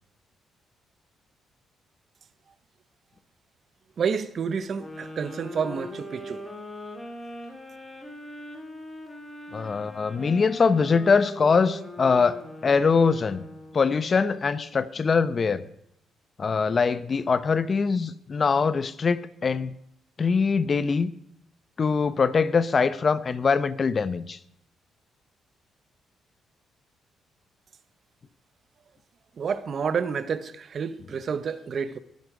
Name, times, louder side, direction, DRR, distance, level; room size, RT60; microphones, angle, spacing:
voice 1, 4.0-6.4 29.4-32.0, right 6 dB, 50° right, 0.9 m, -29 dB
sound 1, 4.8-14.0, left 1 dB, 10° left, 2.7 m, -41 dB
voice 2, 9.5-13.4 13.7-15.6 16.4-19.7 20.2-21.1 21.8-24.4, left 5 dB, 40° left, 0.7 m, -23 dB
20.5 x 9.5 x 5.0 m
cardioid pair, 90°, 0 cm